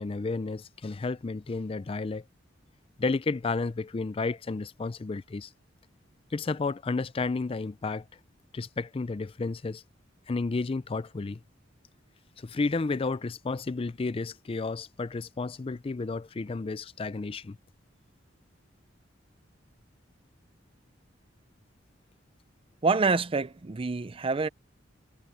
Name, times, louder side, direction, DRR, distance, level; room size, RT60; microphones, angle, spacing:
voice 1, 0.0-2.2 3.0-5.5 6.3-8.0 8.5-9.8 10.3-11.4 12.4-17.6, left 3 dB, 30° left, 0.4 m, -32 dB
voice 2, 22.8-24.5, right 4 dB, 30° right, 0.5 m, -26 dB
head